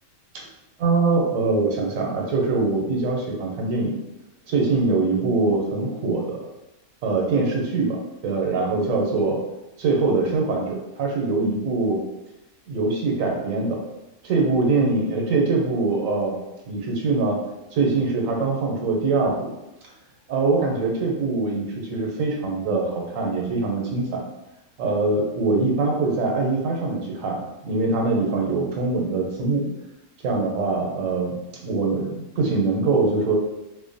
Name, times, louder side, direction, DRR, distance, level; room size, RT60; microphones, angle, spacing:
voice 1, 0.8-4.0 4.5-6.5 7.0-9.4 9.8-12.0 12.7-13.8 14.2-16.4 16.7-17.4 17.7-19.5 20.3-24.2 24.8-29.7 30.2-31.4 31.6-33.4, right 3 dB, 85° right, 0 dB, 1.0 m, -23 dB
2.4 x 2.0 x 2.5 m, 0.97 s
omnidirectional pair, 1.4 m